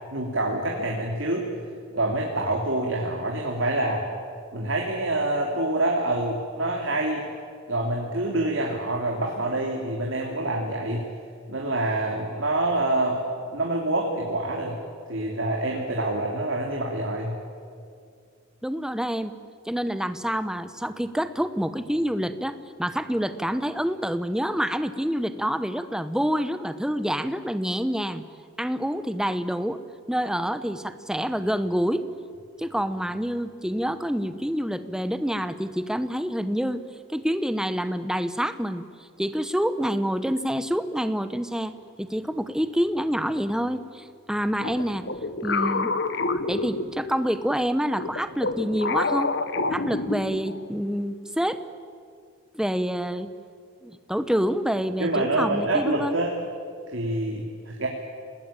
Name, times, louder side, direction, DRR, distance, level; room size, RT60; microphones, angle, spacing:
voice 1, 0.1-1.5 1.9-4.0 4.5-7.2 7.7-11.1 11.5-13.2 13.5-14.8 15.1-17.3 55.0-56.3 56.9-57.9, right 2 dB, 65° right, -1 dB, 3.1 m, -26 dB
voice 2, 18.6-19.3 19.7-28.2 28.6-29.8 30.1-32.0 32.6-36.8 37.1-38.8 39.2-41.7 42.0-45.0 45.4-45.9 46.5-49.3 49.7-51.6 52.5-53.3 53.8-56.2, equal, 5° right, 11 dB, 0.9 m, -27 dB
sound 1, 44.6-47.3 47.9-50.6, left 3 dB, 55° left, 1.3 m, -28 dB
29.0 x 19.5 x 8.9 m, 2.2 s
head